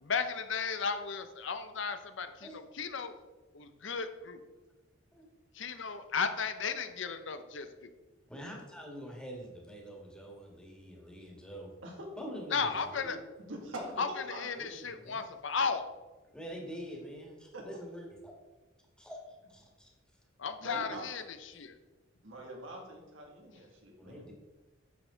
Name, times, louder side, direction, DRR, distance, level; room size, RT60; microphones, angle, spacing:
voice 1, 0.0-3.2 3.5-4.4 5.5-7.7 12.5-13.2 14.0-14.1 14.3-15.9 20.4-21.8, left 5 dB, 70° left, 9 dB, 0.8 m, -35 dB
voice 2, 8.3-11.7 12.2-13.2 13.7-13.9 14.6-15.2 16.3-18.3 19.0-19.2 19.5-19.9 20.7-21.0 24.0-24.3, equal, 5° left, -1 dB, 1.9 m, -45 dB
voice 3, 13.5-13.8 14.1-14.5 17.5-17.6 20.6-21.0 22.2-24.3, right 2 dB, 90° right, 0 dB, 2.5 m, -45 dB
9.6 x 7.2 x 3.9 m, 1.2 s
head